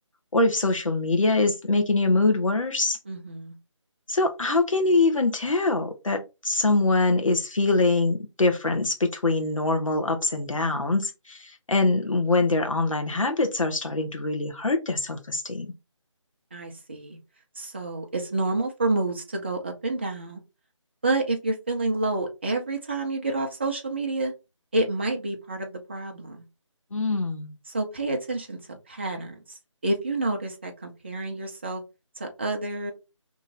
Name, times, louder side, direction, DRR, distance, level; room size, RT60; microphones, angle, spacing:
voice 1, 0.3-3.0 4.1-15.7 26.9-27.6, left 3 dB, 80° left, 1.1 m, -24 dB
voice 2, 3.1-3.5 16.5-17.2 17.6-20.4 21.0-24.3 24.7-26.4 27.7-29.3 29.8-31.8 32.2-32.9, right 2 dB, 20° right, 0.5 m, -29 dB
3.0 x 2.7 x 3.8 m
figure-of-eight pair, 165°, 16 cm